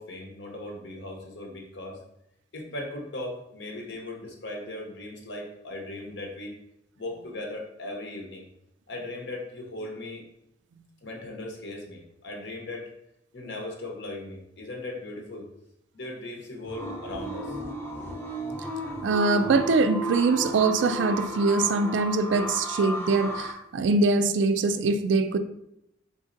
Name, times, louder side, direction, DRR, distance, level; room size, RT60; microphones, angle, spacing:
voice 1, 0.0-2.0 2.5-6.5 7.0-8.4 8.9-10.2 11.0-12.9 13.3-15.5 15.9-17.6, left 2 dB, 65° left, 0.9 m, -38 dB
sound 1, 16.6-23.5, right 1 dB, 10° left, 0.5 m, -34 dB
voice 2, 19.0-25.4, right 3 dB, 70° right, 0.3 m, -23 dB
4.1 x 3.7 x 2.6 m
head